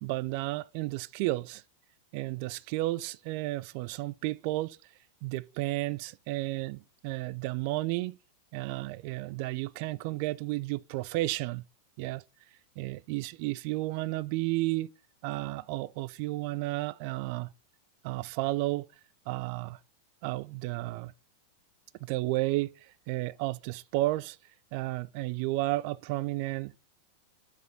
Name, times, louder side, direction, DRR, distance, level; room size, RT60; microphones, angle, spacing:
voice 1, 0.0-1.6 2.1-4.8 5.2-8.2 8.5-11.6 12.0-12.2 12.8-14.9 15.2-17.5 18.0-18.9 19.3-19.8 20.2-21.1 22.0-22.7 23.1-24.4 24.7-26.8, right 19 dB, 45° right, 0.3 m, -32 dB
12.0 x 4.9 x 3.9 m
figure-of-eight pair, 90°, 0 cm